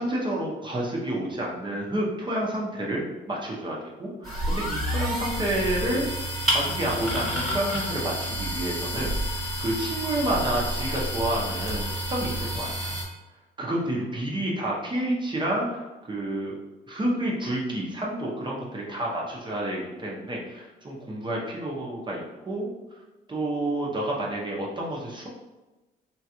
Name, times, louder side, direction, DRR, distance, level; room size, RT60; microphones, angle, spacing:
voice 1, 0.0-6.1 6.5-12.9 13.6-16.5 16.9-22.7 23.3-25.3, right 1 dB, 25° right, -3 dB, 0.7 m, -29 dB
sound 1, 4.2-13.0, equal, 5° left, 1.3 m, -29 dB
3.0 x 2.4 x 2.8 m, 1.1 s
cardioid pair, 90°, 20 cm